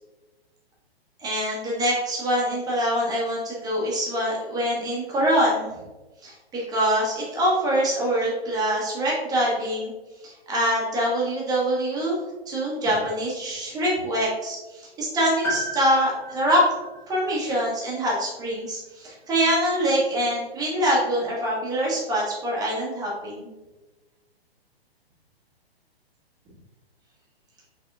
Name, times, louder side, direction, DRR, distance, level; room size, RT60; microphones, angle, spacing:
voice 1, 1.2-5.7 6.2-9.9 10.2-16.6 17.1-23.5, equal, 10° right, -5 dB, 1.1 m, -24 dB
Piano, 15.4-19.3 19.6-19.7 20.8-20.9, right 1 dB, 5° left, 0.5 m, -36 dB
4.8 x 3.7 x 2.3 m, 1.1 s
figure-of-eight pair, 120°, 32 cm